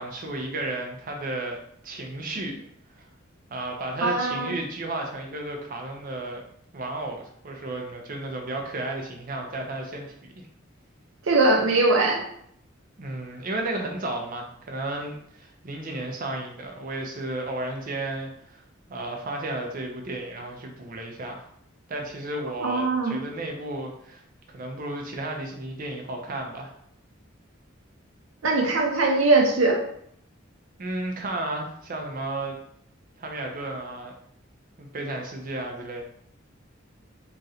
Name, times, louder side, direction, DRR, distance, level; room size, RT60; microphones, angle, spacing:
voice 1, 0.0-2.6 3.0-3.1 3.5-6.4 6.7-10.4 13.0-18.6 18.9-21.5 21.9-24.2 24.5-26.7 30.8-32.6 33.2-34.1 34.8-36.0, right 2 dB, 45° right, 2 dB, 0.5 m, -33 dB
voice 2, 4.0-4.6 11.3-12.2 22.6-23.2 28.4-29.8, right 3 dB, 80° right, 1 dB, 0.7 m, -21 dB
3.0 x 2.4 x 2.7 m, 0.69 s
head